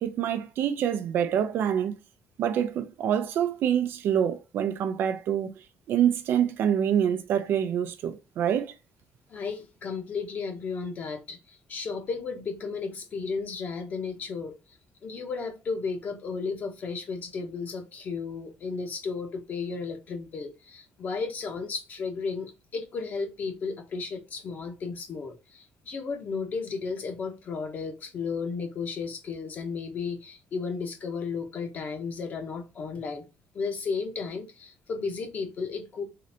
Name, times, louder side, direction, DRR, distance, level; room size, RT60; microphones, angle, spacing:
voice 1, 0.0-1.9 2.4-5.5 5.9-8.7, right 9 dB, 60° right, 0.6 m, -26 dB
voice 2, 9.3-14.5 15.0-33.3 33.5-36.0, left 5 dB, 40° left, 1.0 m, -34 dB
3.9 x 3.2 x 2.8 m
cardioid pair, 150°, 4 cm